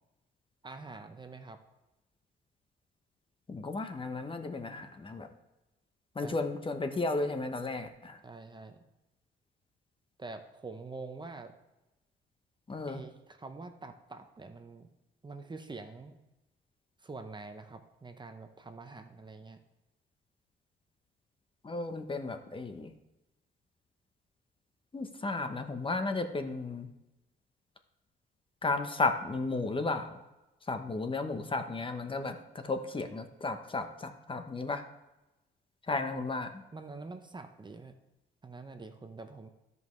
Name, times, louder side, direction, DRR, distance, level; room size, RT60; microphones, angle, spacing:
voice 1, 0.6-1.6 6.2-6.4 8.2-8.8 10.2-11.5 12.9-14.9 15.2-16.2 17.0-19.6 36.7-37.9 38.4-39.5, right 3 dB, 25° right, 7 dB, 0.8 m, -45 dB
voice 2, 3.5-5.3 6.1-8.2 12.7-13.0 21.6-22.9 24.9-26.9 28.6-30.2 30.7-34.8 35.9-36.6, left 3 dB, 25° left, 7 dB, 0.9 m, -34 dB
15.5 x 5.4 x 3.2 m, 0.98 s
cardioid pair, 90°, 20 cm